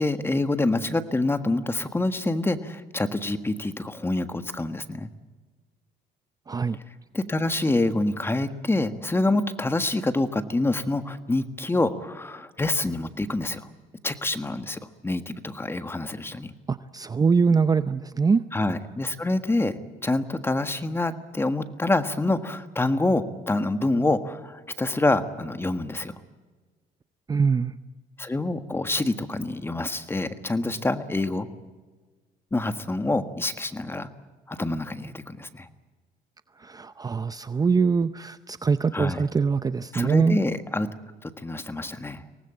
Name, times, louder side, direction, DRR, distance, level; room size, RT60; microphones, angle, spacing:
voice 1, 0.0-5.1 7.1-13.7 14.0-16.5 18.5-19.7 20.0-26.1 28.2-31.5 32.5-34.1 34.5-35.7 38.9-39.2 39.9-40.9 41.2-42.2, left 2 dB, 15° left, 10 dB, 1.5 m, -26 dB
voice 2, 6.5-6.8 16.7-18.4 27.3-27.7 36.6-40.4, right 5 dB, 20° right, 13 dB, 0.6 m, -23 dB
24.0 x 19.0 x 8.8 m, 1.4 s
cardioid pair, 110°, 17 cm